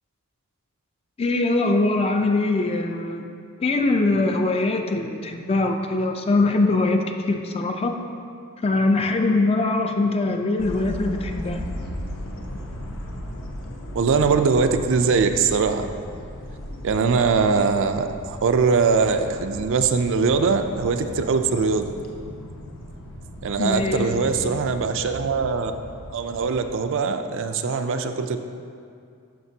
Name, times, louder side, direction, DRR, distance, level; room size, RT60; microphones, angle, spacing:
voice 1, 1.2-3.3 3.6-8.0 8.6-11.7 23.6-24.1, left 2 dB, 25° left, 4 dB, 0.4 m, -22 dB
sound 1, 10.6-26.7, equal, 65° left, 0.8 m, -37 dB
voice 2, 13.9-15.9 16.8-21.9 23.4-25.7 26.1-28.4, right 5 dB, 60° right, 7 dB, 0.4 m, -22 dB
11.5 x 5.1 x 2.7 m, 2.4 s
head